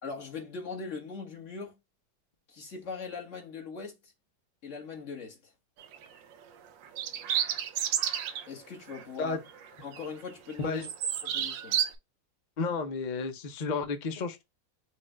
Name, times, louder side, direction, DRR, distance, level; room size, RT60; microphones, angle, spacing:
voice 1, 0.0-1.8 2.5-4.1 4.6-5.5 8.5-9.4 9.8-10.8 11.2-11.8, left 4 dB, 45° left, 1.8 m, -40 dB
sound 1, 5.8-6.1 6.9-8.5 8.9-9.0 9.5-10.2 10.5-11.9, right 9 dB, 85° right, 1.4 m, -31 dB
voice 2, 10.6-10.9 12.6-14.4, left 4 dB, 70° left, 0.4 m, -32 dB
5.9 x 2.5 x 3.3 m
omnidirectional pair, 2.0 m